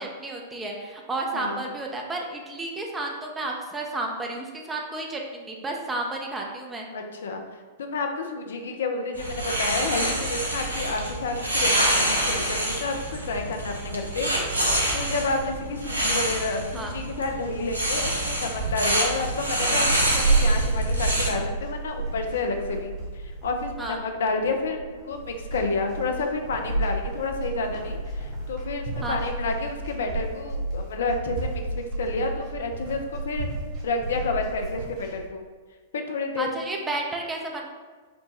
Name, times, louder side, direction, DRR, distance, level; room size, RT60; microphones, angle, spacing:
voice 1, 0.0-6.9 16.7-16.9 23.8-24.0 29.0-29.2 36.4-37.7, right 2 dB, 15° right, 0 dB, 0.5 m, -32 dB
voice 2, 6.9-7.4 7.8-14.3 14.7-19.9 20.1-33.5 33.8-35.4 35.9-36.5, left 3 dB, 60° left, 4 dB, 0.4 m, -30 dB
sound 1, 9.1-21.3, right 1 dB, 80° right, 0.6 m, -26 dB
sound 2, 19.5-35.3, right 3 dB, 35° right, 0.9 m, -31 dB
5.1 x 2.2 x 2.9 m, 1.5 s
figure-of-eight pair, 100°, 0 cm